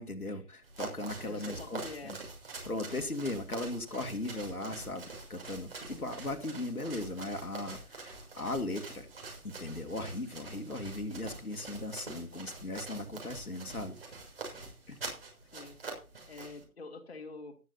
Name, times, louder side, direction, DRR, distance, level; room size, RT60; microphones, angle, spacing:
voice 1, 0.0-2.2 2.6-9.1 9.4-14.0 14.9-15.0, left 2 dB, 80° left, 5 dB, 2.4 m, -38 dB
sound 1, 0.6-16.6, right 3 dB, 40° right, 6.4 m, -45 dB
voice 2, 1.2-2.2 15.4-15.8 16.3-17.6, left 3 dB, 45° left, 4 dB, 2.3 m, -46 dB
15.5 x 12.0 x 2.8 m, 0.31 s
figure-of-eight pair, 155°, 44 cm